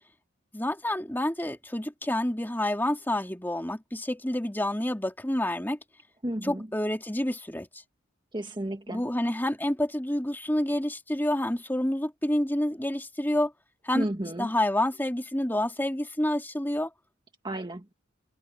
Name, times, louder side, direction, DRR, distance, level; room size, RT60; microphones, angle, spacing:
voice 1, 0.5-5.8 6.4-7.7 8.9-13.5 13.8-14.1 14.4-16.9, left 1 dB, 10° left, 2.6 m, -28 dB
voice 2, 6.2-6.7 8.3-9.0 13.9-14.5 17.4-17.8, right 1 dB, 25° right, 1.6 m, -32 dB
head